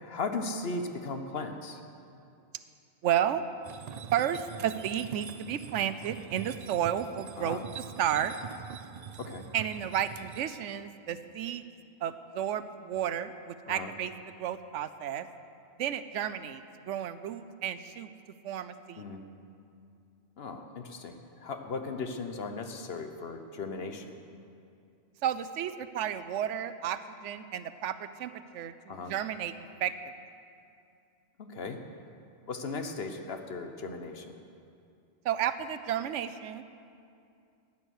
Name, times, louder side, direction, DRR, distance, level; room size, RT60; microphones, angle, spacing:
voice 1, 0.0-1.8 7.4-7.7 9.2-9.5 13.7-13.9 19.0-19.3 20.4-24.2 28.9-29.1 31.4-31.8 32.5-34.3, left 3 dB, 60° left, 6 dB, 1.1 m, -37 dB
voice 2, 3.0-3.4 4.1-7.6 8.0-8.4 9.5-11.6 12.0-14.1 14.4-15.3 15.8-18.1 18.4-19.0 25.2-29.5 29.8-29.9 35.2-36.6, right 10 dB, 85° right, 12 dB, 1.0 m, -32 dB
sound 1, 3.6-10.4, right 8 dB, 70° right, 0.4 m, -44 dB
14.5 x 9.7 x 6.4 m, 2.5 s
omnidirectional pair, 1.2 m